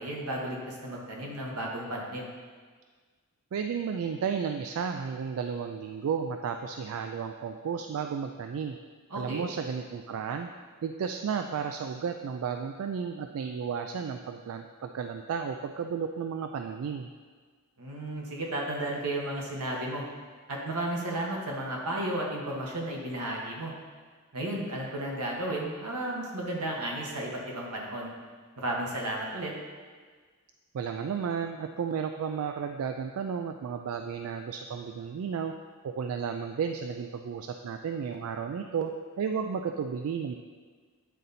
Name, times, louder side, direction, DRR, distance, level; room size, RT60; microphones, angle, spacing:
voice 1, 0.0-2.3 9.1-9.5 17.8-20.0 20.5-23.7 24.3-28.1 28.6-29.5, right 1 dB, 85° right, -2 dB, 1.4 m, -33 dB
voice 2, 3.5-8.8 9.2-10.5 10.8-17.1 30.7-35.5 35.8-38.9 39.2-40.4, right 6 dB, 65° right, 6 dB, 0.3 m, -33 dB
9.2 x 3.9 x 4.1 m, 1.5 s
head